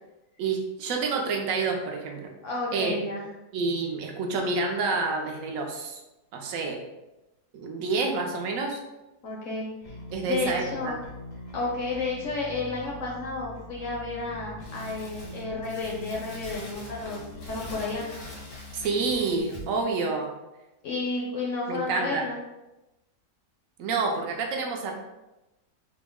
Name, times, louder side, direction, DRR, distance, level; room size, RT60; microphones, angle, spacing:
voice 1, 0.4-2.3 2.7-3.1 3.5-6.0 6.3-6.8 7.5-8.8 10.1-10.9 18.7-20.3 21.7-22.2 23.8-24.9, right 4 dB, 65° right, 2 dB, 0.9 m, -28 dB
voice 2, 2.4-3.3 9.2-9.9 10.2-11.0 11.5-18.1 20.8-22.4, left 3 dB, 65° left, -2 dB, 0.8 m, -32 dB
Bass guitar, 9.8-19.4, left 1 dB, 50° left, 0.4 m, -43 dB
Crumpling crinkling, 14.6-19.8, equal, 90° left, 1.6 m, -45 dB
3.7 x 2.0 x 3.5 m, 0.99 s
omnidirectional pair, 1.8 m